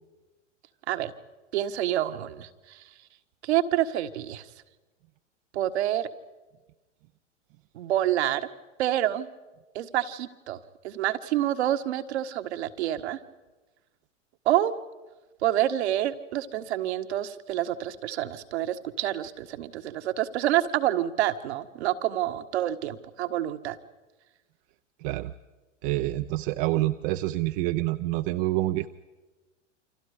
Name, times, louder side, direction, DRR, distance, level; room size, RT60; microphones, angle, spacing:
voice 1, 1.5-2.8 3.4-4.4 5.5-6.1 7.7-8.5 8.8-9.3 9.7-10.6 10.8-13.2 14.4-14.7 15.4-23.8, right 12 dB, 60° right, 9 dB, 1.7 m, -27 dB
voice 2, 25.0-25.3 25.8-28.9, right 17 dB, 45° right, 9 dB, 0.9 m, -27 dB
29.0 x 26.0 x 5.1 m, 1.2 s
hypercardioid pair, 100°, 37 cm